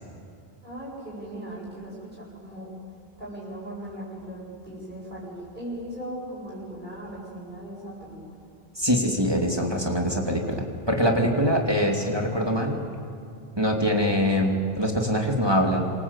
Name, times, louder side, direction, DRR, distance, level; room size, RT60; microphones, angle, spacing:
voice 1, 0.6-2.7 3.2-8.2, right 1 dB, 50° right, -6 dB, 8.0 m, -38 dB
voice 2, 8.8-12.8 13.6-15.8, equal, 25° right, 1 dB, 2.8 m, -23 dB
27.0 x 26.5 x 8.2 m, 2.4 s
omnidirectional pair, 1.1 m